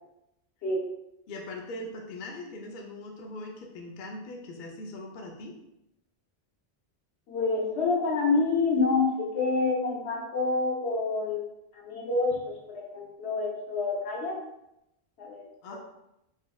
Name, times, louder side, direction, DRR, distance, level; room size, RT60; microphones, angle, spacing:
voice 1, 1.3-5.6 15.6-15.8, left 2 dB, 55° left, 0 dB, 0.6 m, -40 dB
voice 2, 7.3-12.3 12.7-14.4 15.2-15.8, left 3 dB, 75° left, -2 dB, 1.1 m, -28 dB
3.5 x 3.0 x 2.2 m, 0.85 s
omnidirectional pair, 1.1 m